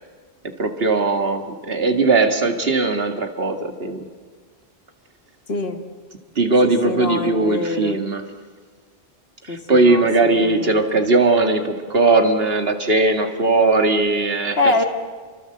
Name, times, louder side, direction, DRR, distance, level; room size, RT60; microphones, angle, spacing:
voice 1, 0.6-4.1 6.4-8.2 9.5-14.7, right 3 dB, 65° right, 5 dB, 2.2 m, -19 dB
voice 2, 5.5-5.8 6.6-8.0 9.5-10.8 14.6-14.8, left 3 dB, 70° left, 5 dB, 2.1 m, -24 dB
28.5 x 24.0 x 7.8 m, 1.5 s
omnidirectional pair, 1.1 m